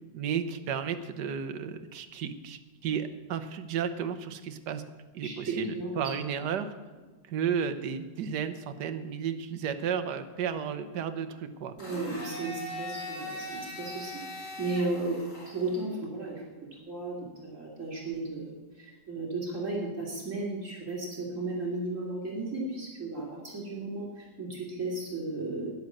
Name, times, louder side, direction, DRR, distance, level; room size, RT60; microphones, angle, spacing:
voice 1, 0.1-4.8 5.1-6.7 7.3-11.7, right 7 dB, 75° right, 9 dB, 1.5 m, -33 dB
voice 2, 5.2-6.1 11.8-16.4 16.8-25.7, right 2 dB, 45° right, -3 dB, 3.4 m, -35 dB
Domestic sounds home sounds, 11.8-15.8, left 1 dB, 45° left, 3.4 m, -40 dB
11.5 x 10.5 x 7.6 m, 1.3 s
omnidirectional pair, 1.8 m